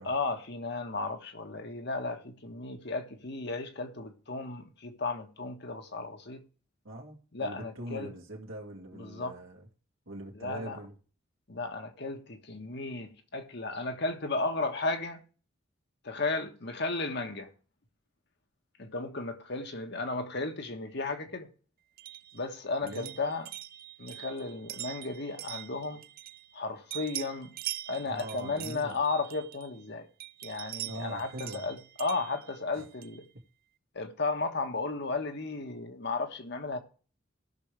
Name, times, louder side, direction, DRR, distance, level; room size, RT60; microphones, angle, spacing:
voice 1, 0.0-6.4 7.3-8.1 8.9-9.3 10.3-10.8 11.5-15.2 16.0-17.5 18.8-21.5 22.3-23.5 24.0-26.0 26.5-27.5 27.9-30.1 30.4-33.3 33.9-36.8, left 3 dB, 55° left, 1.4 m, -34 dB
voice 2, 6.8-9.7 10.1-10.9 22.8-23.2 28.0-29.0 30.8-31.6 32.7-32.8, right 1 dB, 90° right, 2.5 m, -42 dB
sound 1, 22.0-26.6 26.9-29.8 30.2-33.3, right 15 dB, 45° right, 0.4 m, -43 dB
18.0 x 6.2 x 3.4 m
head